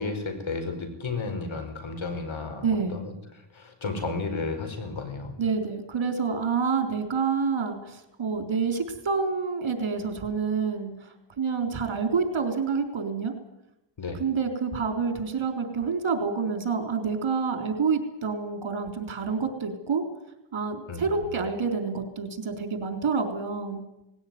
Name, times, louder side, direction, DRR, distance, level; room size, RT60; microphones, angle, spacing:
voice 1, 0.0-3.1 3.5-5.3 14.0-14.2 20.9-21.4, left 3 dB, 70° left, 7 dB, 5.0 m, -33 dB
voice 2, 2.6-3.0 5.4-10.9 11.4-13.3 14.2-20.0 20.5-23.8, right 5 dB, 70° right, 6 dB, 3.8 m, -28 dB
19.0 x 17.0 x 9.5 m, 0.88 s
cardioid pair, 60°, 49 cm